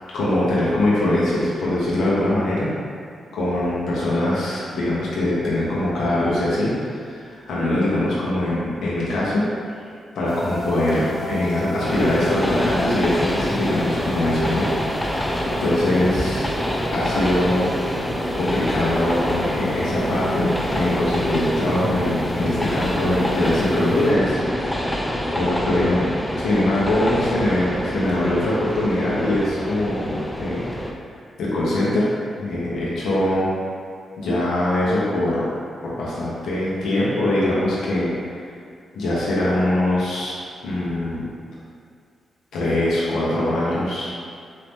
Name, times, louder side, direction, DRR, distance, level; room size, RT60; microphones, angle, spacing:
voice 1, 0.1-2.7 3.3-9.5 10.1-14.7 15.1-16.5 16.9-24.4 25.3-26.1 26.4-30.6 31.4-32.1 32.4-33.5 34.2-35.5 35.8-38.1 38.9-41.3 42.5-44.1, left 1 dB, 80° left, -8 dB, 1.0 m, -22 dB
sound 1, 10.3-24.1, equal, 40° left, 1.0 m, -33 dB
Train, 11.8-30.9, equal, 5° left, 0.4 m, -26 dB
4.1 x 2.8 x 3.6 m, 2.3 s
cardioid pair, 80°, 0 cm